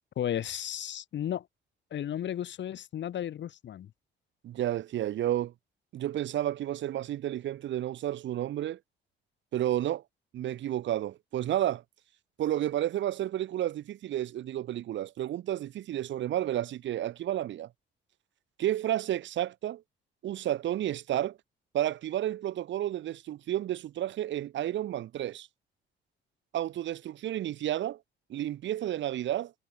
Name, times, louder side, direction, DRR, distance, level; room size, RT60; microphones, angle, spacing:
voice 1, 0.2-1.5 1.9-3.9, left 10 dB, 65° left, 2.4 m, -34 dB
voice 2, 4.4-5.5 5.9-8.8 9.5-10.0 10.3-11.8 12.4-17.7 18.6-19.8 20.2-21.4 21.7-25.5 26.5-28.0 28.3-29.5, right 12 dB, 70° right, 0.9 m, -31 dB
cardioid pair, 90°, 20 cm